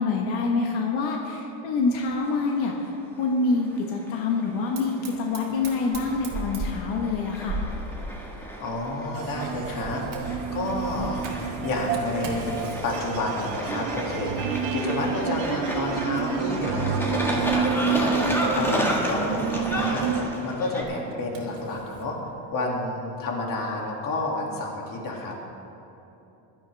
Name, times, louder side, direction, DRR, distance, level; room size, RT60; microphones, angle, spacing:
voice 1, 0.0-2.7 3.2-7.6, left 4 dB, 85° left, 0 dB, 1.5 m, -26 dB
sound 1, 2.1-20.8, equal, 5° left, 1.4 m, -33 dB
Fire, 4.7-22.1, right 2 dB, 45° right, 2.3 m, -41 dB
voice 2, 8.6-22.2 22.5-25.4, left 2 dB, 45° left, -1 dB, 2.5 m, -30 dB
sound 2, 9.1-20.2, right 6 dB, 80° right, 1.5 m, -29 dB
16.0 x 12.0 x 3.4 m, 3.0 s
cardioid pair, 135°, 44 cm